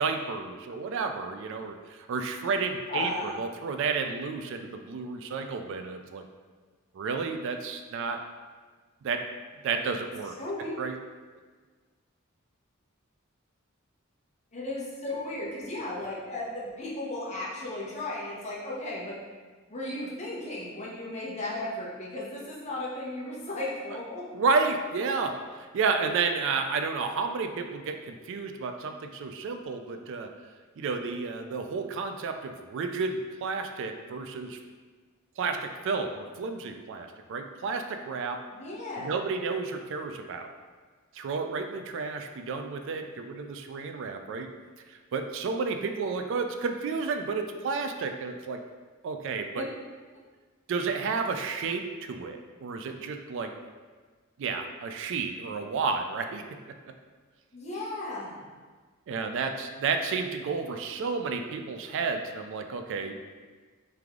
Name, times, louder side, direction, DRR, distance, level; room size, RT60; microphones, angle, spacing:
voice 1, 0.0-6.2 6.9-8.3 9.0-9.3 9.6-10.4 10.8-11.0 24.3-30.3 30.8-34.6 35.4-38.4 39.0-40.5 41.1-44.5 44.9-48.6 49.0-49.6 50.7-53.5 54.4-56.6 59.1-63.1, right 4 dB, 60° right, 6 dB, 0.3 m, -31 dB
voice 2, 2.9-3.5 10.4-10.7 14.5-19.2 19.7-24.3 38.5-39.2 49.5-49.7 57.5-58.5, left 2 dB, 35° left, -6 dB, 0.9 m, -35 dB
3.5 x 3.3 x 3.6 m, 1.4 s
head